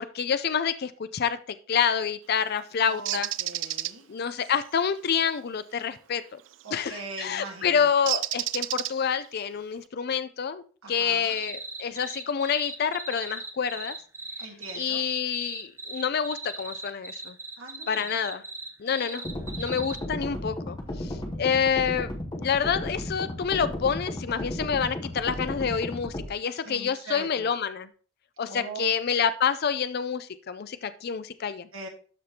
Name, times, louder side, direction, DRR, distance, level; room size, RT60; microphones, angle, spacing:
voice 1, 0.0-1.4 1.7-3.3 3.7-3.8 4.1-6.4 6.7-10.6 10.9-13.9 14.7-17.4 17.9-18.4 18.8-19.2 19.6-22.1 22.4-27.9 28.4-31.7, left 7 dB, 50° left, 13 dB, 0.4 m, -28 dB
voice 2, 2.9-4.0 6.6-7.9 10.8-11.4 14.4-15.0 17.6-18.1 18.9-20.2 21.1-21.6 26.6-27.5 28.5-28.9 31.7-31.9, right 3 dB, 80° right, 0 dB, 1.5 m, -42 dB
Bird, 3.1-3.9 6.5-6.8 8.1-9.3, right 14 dB, 60° right, 0.4 m, -30 dB
sound 1, 11.3-20.0, right 3 dB, 10° right, 0.7 m, -38 dB
sound 2, 19.2-26.3, left 1 dB, 20° left, 0.9 m, -34 dB
12.5 x 5.1 x 2.8 m, 0.40 s
head